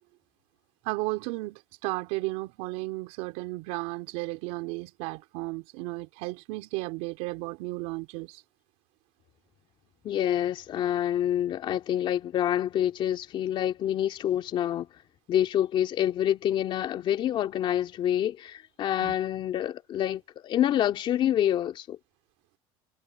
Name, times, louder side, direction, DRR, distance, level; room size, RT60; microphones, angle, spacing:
voice 1, 0.8-8.4 19.0-19.1, right 23 dB, 70° right, 3.1 m, -34 dB
voice 2, 10.0-14.9 15.3-22.0, left 11 dB, 40° left, 2.5 m, -27 dB
supercardioid pair, 135°, 13 cm